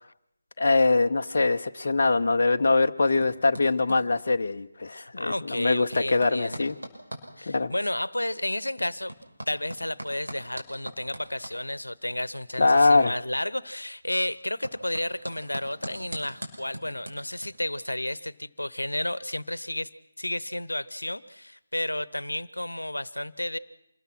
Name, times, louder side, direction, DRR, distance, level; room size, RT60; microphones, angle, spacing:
voice 1, 0.6-6.7 7.5-7.7 12.6-13.1, left 3 dB, 45° left, 5 dB, 0.7 m, -23 dB
sound 1, 2.3-17.5, right 1 dB, 80° right, 6.0 m, -44 dB
voice 2, 4.9-6.7 7.4-9.1 9.5-19.9 20.2-23.6, left 1 dB, 75° left, 18 dB, 1.0 m, -32 dB
27.0 x 20.5 x 6.2 m, 0.83 s
figure-of-eight pair, 155°, 0 cm